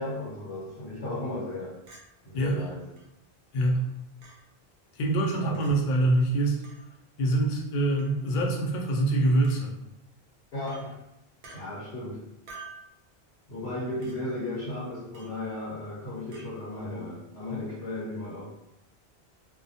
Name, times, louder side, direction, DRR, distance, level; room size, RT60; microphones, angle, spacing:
voice 1, 0.0-1.8 2.2-2.9 5.4-5.6 10.5-11.0 11.5-12.3 13.5-18.5, left 2 dB, 80° left, -8 dB, 1.0 m, -35 dB
Chink clink, 1.9-2.0 3.0-3.1 4.2-4.4 5.5-5.7 6.6-6.8 8.0-8.2 9.4-9.6 10.7-10.8 11.4-11.6 12.5-12.8 14.0-14.2 15.1-15.4 16.3-16.5, right 4 dB, 60° right, 0.7 m, -47 dB
voice 2, 2.3-2.7 3.5-3.9 4.9-6.6 7.2-9.7, right 2 dB, 60° left, 0 dB, 0.6 m, -25 dB
2.2 x 2.1 x 2.6 m, 0.86 s
omnidirectional pair, 1.1 m